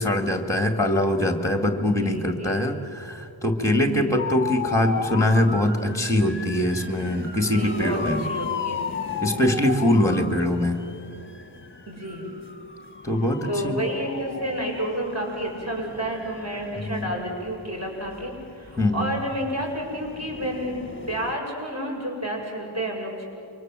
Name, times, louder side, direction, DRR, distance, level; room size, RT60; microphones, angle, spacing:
voice 1, 0.0-8.2 9.2-10.8 13.0-13.9 16.8-17.1 18.8-19.1, left 1 dB, 5° left, 6 dB, 2.2 m, -23 dB
voice 2, 2.0-2.7 3.8-4.2 7.4-8.8 11.9-12.3 13.5-20.8 21.1-23.2, equal, 30° right, -1 dB, 7.4 m, -30 dB
sound 1, 4.2-21.3, left 5 dB, 25° left, 1.6 m, -35 dB
29.5 x 24.0 x 7.6 m, 2.6 s
wide cardioid pair, 45°, 49 cm